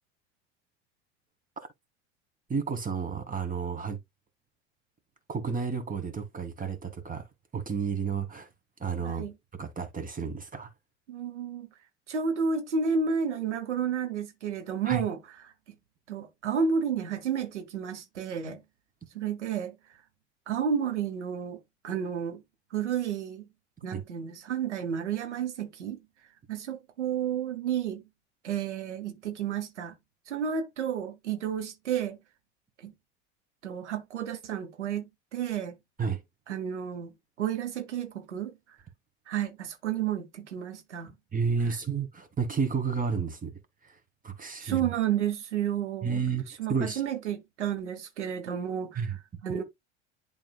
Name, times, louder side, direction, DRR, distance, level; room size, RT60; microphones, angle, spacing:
voice 1, 2.5-4.0 5.3-7.3 7.5-8.5 8.8-9.3 9.6-10.7 14.8-15.0 23.9-24.0 36.0-36.2 41.3-43.5 44.2-44.9 46.0-47.0 49.0-49.2, right 5 dB, 25° right, 2.1 m, -31 dB
voice 2, 9.0-9.3 11.1-11.7 12.1-15.2 15.4-15.5 16.1-18.6 19.1-19.7 20.5-21.6 21.8-22.4 22.7-23.5 23.8-26.0 26.5-28.0 28.4-29.9 30.3-32.2 32.8-32.9 33.6-35.0 35.3-35.8 36.5-37.1 37.4-38.5 39.3-41.1 44.6-46.2 46.6-49.6, right 7 dB, 85° right, 1.2 m, -31 dB
11.0 x 3.7 x 2.3 m
hypercardioid pair, 75°, 34 cm